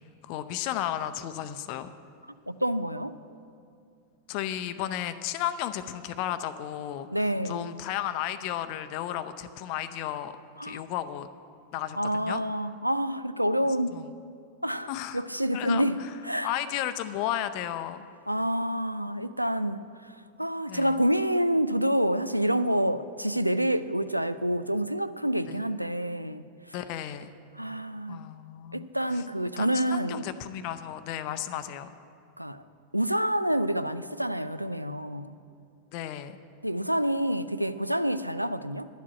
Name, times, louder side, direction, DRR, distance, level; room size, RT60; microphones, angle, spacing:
voice 1, 0.2-1.9 4.3-10.4 10.6-11.3 11.7-12.4 13.9-14.2 14.9-15.2 15.5-16.1 16.4-18.0 20.7-21.0 25.5-25.6 26.7-27.3 28.1-29.2 29.6-31.9 35.9-36.4, left 11 dB, 45° left, 0.6 m, -34 dB
voice 2, 2.5-3.2 7.1-7.8 10.6-10.8 12.0-14.0 14.6-16.5 18.3-26.5 27.6-28.2 28.7-30.3 32.4-32.6 32.9-35.4 36.6-38.9, equal, 90° right, 0.4 m, -28 dB
11.5 x 7.4 x 8.3 m
figure-of-eight pair, 90°, 0 cm